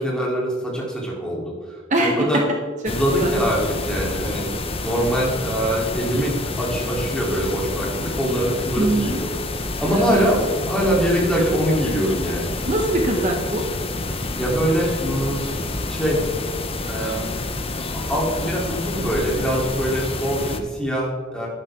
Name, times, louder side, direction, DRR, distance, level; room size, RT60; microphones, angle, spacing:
voice 1, 0.0-2.4 2.9-4.4 4.8-9.3 9.8-12.5 14.3-15.4 15.9-16.2 16.9-17.3 17.9-21.5, right 1 dB, 5° left, -4 dB, 3.5 m, -23 dB
sound 1, 2.9-20.6, left 2 dB, 30° left, 0.9 m, -28 dB
voice 2, 8.8-9.2 9.9-10.3 12.7-13.7, right 1 dB, 40° right, 1 dB, 1.3 m, -22 dB
12.0 x 11.0 x 3.8 m, 1.5 s
head